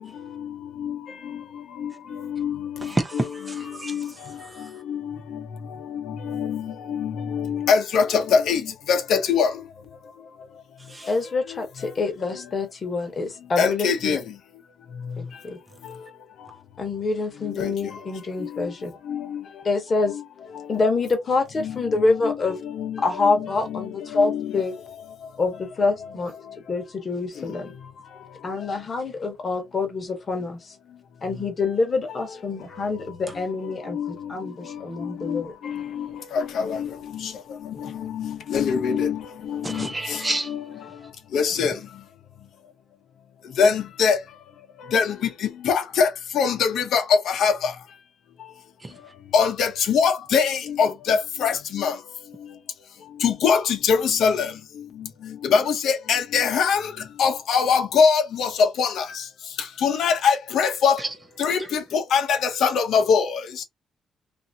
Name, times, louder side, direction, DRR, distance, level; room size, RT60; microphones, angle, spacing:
voice 1, 2.2-4.1 4.9-5.2 5.9-8.6 8.9-9.5 13.6-14.2 17.6-17.7 18.4-18.7 19.1-19.4 20.1-20.2 21.6-22.4 22.7-24.6 33.9-34.1 35.0-36.9 37.2-37.3 37.8-39.2 39.5-40.2 40.5-40.6 41.3-41.7 43.6-44.2 44.9-45.1 45.6-46.1 46.3-47.7 49.3-51.9 53.2-54.5 55.4-56.9 57.2-59.0 59.8-61.0 61.4-63.6, left 6 dB, 70° left, 0.7 m, -23 dB
voice 2, 2.8-4.7 10.9-11.1 39.6-40.5 48.8-48.9 61.0-61.1, right 2 dB, 15° right, 0.5 m, -30 dB
voice 3, 11.1-14.2 15.2-15.6 16.8-18.9 19.6-20.2 20.7-22.6 23.0-24.8 25.4-26.3 26.7-27.7 28.4-30.7 31.2-35.5, left 3 dB, 35° left, 1.0 m, -26 dB
2.8 x 2.5 x 2.6 m
cardioid pair, 150°, 0 cm